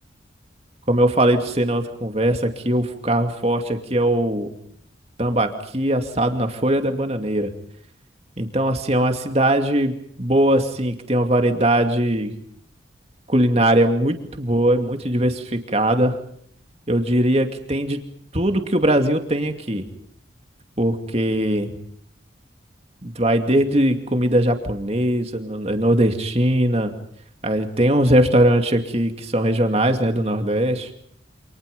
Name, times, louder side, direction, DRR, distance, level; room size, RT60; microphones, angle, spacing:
voice 1, 0.9-4.5 5.2-7.5 8.4-12.3 13.3-16.1 16.9-18.0 18.3-19.9 20.8-21.7 23.0-26.9 27.4-30.9, right 1 dB, 35° right, 5 dB, 2.5 m, -20 dB
29.0 x 27.0 x 5.5 m, 0.64 s
head